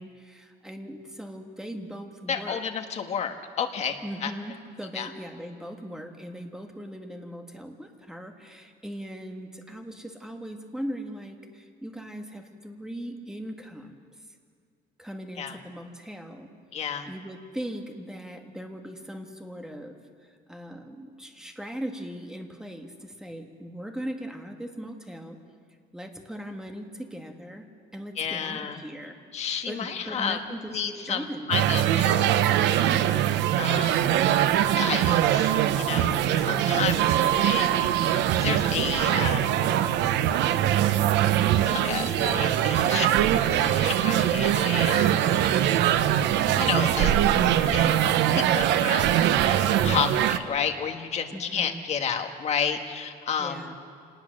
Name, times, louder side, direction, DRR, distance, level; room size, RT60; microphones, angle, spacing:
voice 1, 0.0-2.6 4.0-14.0 15.0-16.5 17.1-19.9 20.2-25.4 25.9-27.7 27.9-29.1 29.7-31.5 51.3-51.8 53.4-53.7, equal, 5° right, 3 dB, 1.5 m, -39 dB
voice 2, 2.3-4.3 4.9-5.1 15.4-15.6 16.7-17.1 28.2-28.8 29.3-30.4 30.7-32.4 33.6-34.2 34.8-39.5 41.6-43.1 43.5-45.3 46.6-47.2 47.7-48.1 48.3-53.7, left 7 dB, 40° left, 5 dB, 1.5 m, -31 dB
sound 1, 31.5-50.4, right 11 dB, 85° right, 0.9 m, -22 dB
Bark / Growling, 33.0-38.6 39.1-51.0, left 3 dB, 20° left, 4.5 m, -50 dB
26.5 x 19.5 x 6.4 m, 2.2 s
cardioid pair, 170°, 18 cm